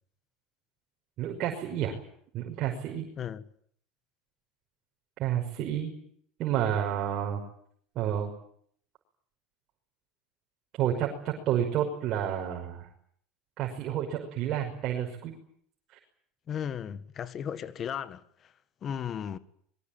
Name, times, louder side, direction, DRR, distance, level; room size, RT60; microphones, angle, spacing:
voice 1, 1.2-2.0 2.3-3.1 5.2-5.9 6.4-7.4 8.0-8.3 10.8-12.9 13.6-15.3 15.9-16.0, right 10 dB, 50° right, 5.9 m, -30 dB
voice 2, 16.5-18.5 18.8-19.4, left 8 dB, 40° left, 1.7 m, -35 dB
23.0 x 22.5 x 9.1 m
supercardioid pair, 105°, 0 cm